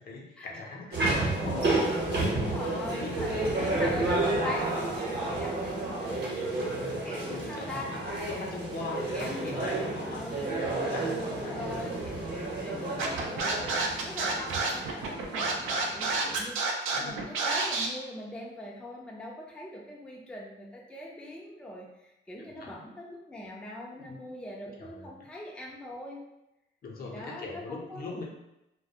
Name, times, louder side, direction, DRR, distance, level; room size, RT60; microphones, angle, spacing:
voice 1, 0.0-2.1 2.5-3.7 4.1-4.2 4.5-4.6 6.7-12.0 12.6-13.0 16.9-17.2 22.6-22.7 24.0-24.2 24.8-25.1 26.8-28.2, left 3 dB, 50° left, -1 dB, 0.6 m, -41 dB
sound 1, 0.9-16.5, right 2 dB, 55° right, 0.9 m, -31 dB
voice 2, 1.3-1.8 2.3-6.3 7.0-7.9 9.1-9.5 10.0-10.5 11.2-26.2 27.0-28.2, left 1 dB, 5° left, -3 dB, 0.4 m, -41 dB
Scratching (performance technique), 13.0-17.9, right 3 dB, 85° right, 0.4 m, -29 dB
2.3 x 2.1 x 2.8 m, 0.89 s
cardioid pair, 90°, 20 cm